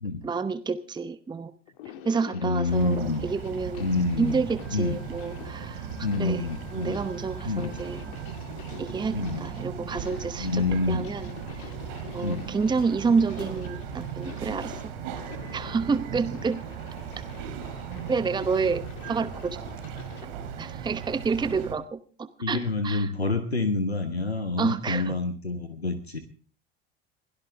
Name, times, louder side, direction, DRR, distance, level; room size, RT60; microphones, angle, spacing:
voice 1, 0.2-1.5 2.0-3.8 4.2-5.9 6.2-6.5 6.7-8.0 8.8-11.7 12.1-14.9 15.5-16.6 18.1-19.6 20.2-20.3 20.6-23.1 24.6-25.1, right 5 dB, 15° right, 14 dB, 0.9 m, -29 dB
sound 1, 1.7-20.3, left 11 dB, 60° left, 2.1 m, -47 dB
voice 2, 2.3-3.3 3.8-4.4 4.7-5.0 6.0-7.0 7.4-7.7 9.1-9.5 10.4-11.1 12.2-12.5 22.4-26.2, left 3 dB, 85° left, 9 dB, 1.3 m, -27 dB
Bird vocalization bird call bird song, 2.7-21.7, right 7 dB, 60° right, 3.2 m, -37 dB
Wind instrument woodwind instrument, 4.6-8.3, left 1 dB, 40° right, 7.0 m, -56 dB
22.5 x 17.5 x 3.5 m, 0.42 s
figure-of-eight pair, 65°, 31 cm